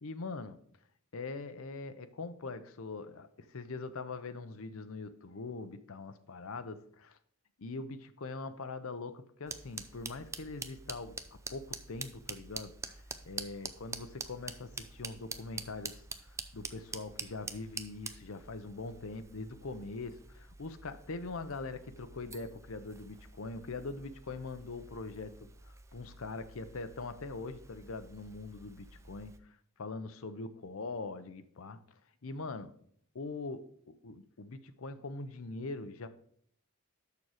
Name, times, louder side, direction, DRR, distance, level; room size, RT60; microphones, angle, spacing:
voice 1, 0.0-0.6 1.1-7.2 7.6-11.2 11.5-25.4 25.7-29.3 29.8-31.8 32.2-32.8 33.1-36.1, left 3 dB, 65° left, 0.7 m, -42 dB
sound 1, 9.5-29.4, right 4 dB, 15° right, 0.4 m, -47 dB
6.8 x 6.2 x 4.8 m
head